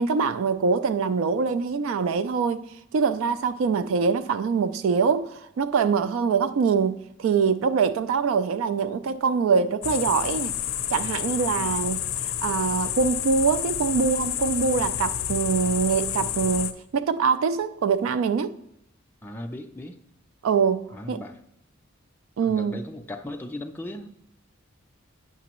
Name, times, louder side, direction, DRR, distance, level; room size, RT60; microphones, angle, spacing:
voice 1, 0.0-2.7 2.9-10.5 10.9-18.6 20.4-21.2 22.4-22.8, right 5 dB, 80° right, 0.3 m, -24 dB
sound 1, 9.8-16.7, left 10 dB, 80° left, 0.5 m, -29 dB
voice 2, 19.2-20.0 20.9-21.4 22.4-24.1, left 1 dB, 10° left, 0.4 m, -37 dB
9.3 x 5.8 x 3.0 m
head